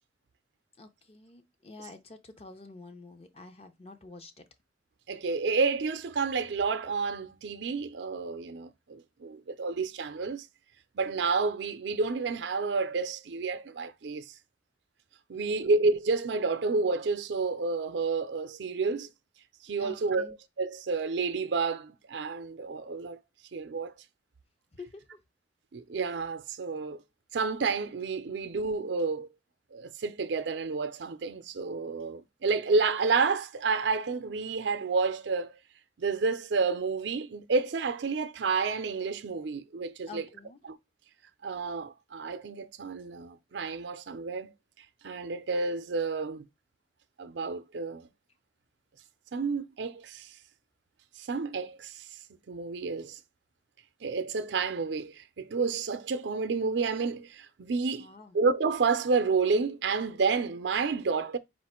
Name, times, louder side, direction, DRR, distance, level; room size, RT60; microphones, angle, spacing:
voice 1, 0.8-4.4 15.4-15.6 19.8-20.4 24.7-25.2 40.0-40.6 58.0-58.4, left 3 dB, 35° left, 0.6 m, -48 dB
voice 2, 5.1-10.5 10.9-14.3 15.3-19.1 19.6-23.2 23.5-23.9 25.7-27.0 27.3-29.3 29.7-35.5 36.0-40.2 40.6-40.8 41.4-44.5 45.0-46.4 47.2-48.1 49.3-50.4 51.2-52.1 52.5-53.2 54.0-58.1 58.3-61.4, right 4 dB, 85° right, 0.5 m, -30 dB
4.3 x 2.5 x 4.3 m
head